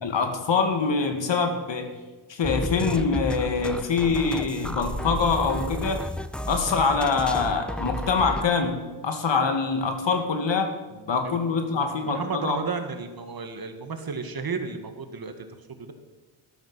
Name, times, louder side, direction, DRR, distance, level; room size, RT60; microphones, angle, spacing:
voice 1, 0.0-1.9 2.3-6.0 6.5-10.7 11.1-12.6, left 5 dB, 65° left, 6 dB, 2.2 m, -24 dB
sound 1, 2.4-8.4, equal, ahead, 0.7 m, -32 dB
voice 2, 11.7-15.9, right 5 dB, 45° right, 7 dB, 1.9 m, -33 dB
13.0 x 13.0 x 5.6 m, 1.2 s
cardioid pair, 80°, 48 cm